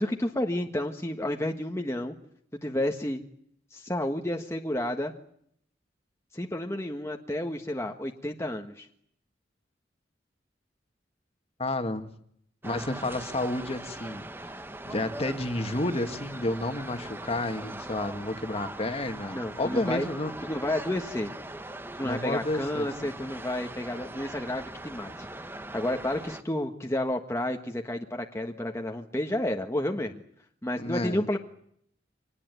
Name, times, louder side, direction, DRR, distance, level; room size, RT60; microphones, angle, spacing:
voice 1, 0.0-2.1 2.6-3.2 3.7-5.1 6.3-8.9 19.3-20.1 20.4-21.3 22.0-25.3 25.7-30.2 30.6-31.4, left 1 dB, 15° left, 3 dB, 1.5 m, -31 dB
voice 2, 11.6-12.1 12.6-14.5 14.8-20.3 22.0-23.1 30.8-31.2, left 2 dB, 35° left, 8 dB, 1.9 m, -31 dB
sound 1, 12.6-26.4, right 1 dB, 10° right, 1.1 m, -41 dB
25.5 x 19.5 x 9.3 m, 0.69 s
head